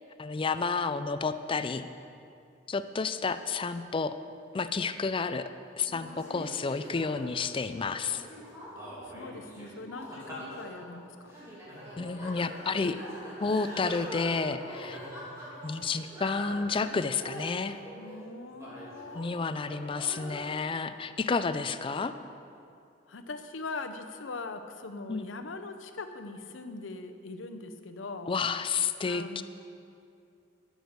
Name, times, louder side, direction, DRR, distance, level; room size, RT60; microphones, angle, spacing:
voice 1, 0.2-1.9 2.7-4.1 4.5-5.5 5.8-8.2 12.0-13.0 13.4-15.0 15.6-17.8 19.1-22.1 25.1-25.2 28.3-29.4, left 4 dB, 25° left, 11 dB, 0.4 m, -30 dB
sound 1, 5.9-19.3 19.6-20.5, equal, 15° right, 2.9 m, -43 dB
voice 2, 9.0-11.4 18.0-20.3 23.1-28.3 29.0-29.4, left 3 dB, 80° left, 8 dB, 0.7 m, -42 dB
13.0 x 6.3 x 6.6 m, 2.6 s
head